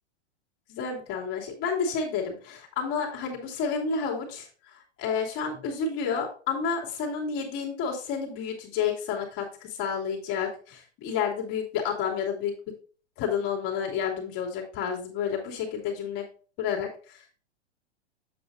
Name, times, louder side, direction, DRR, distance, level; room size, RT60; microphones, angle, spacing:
voice 1, 0.7-4.5 5.0-12.5 13.2-16.3 16.6-17.2, left 6 dB, 45° left, -2 dB, 2.8 m, -30 dB
8.1 x 6.9 x 2.7 m, 0.38 s
hypercardioid pair, 115°, 34 cm